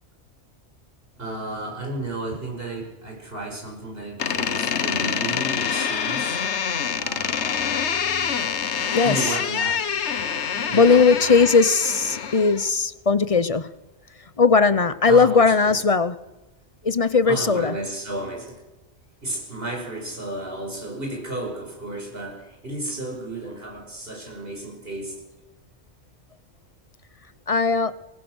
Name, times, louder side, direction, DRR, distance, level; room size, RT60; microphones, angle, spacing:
voice 1, 1.2-6.6 7.0-8.5 8.8-9.9 10.5-11.5 15.1-15.8 17.2-18.6 19.2-25.2, right 2 dB, 55° right, 5.9 m, -33 dB
Door, 4.2-12.7, left 7 dB, 70° left, 1.3 m, -26 dB
voice 2, 8.9-9.3 10.7-13.7 14.4-16.2 16.8-17.8 27.5-27.9, left 4 dB, 35° left, 0.7 m, -18 dB
23.5 x 19.5 x 6.3 m
omnidirectional pair, 1.2 m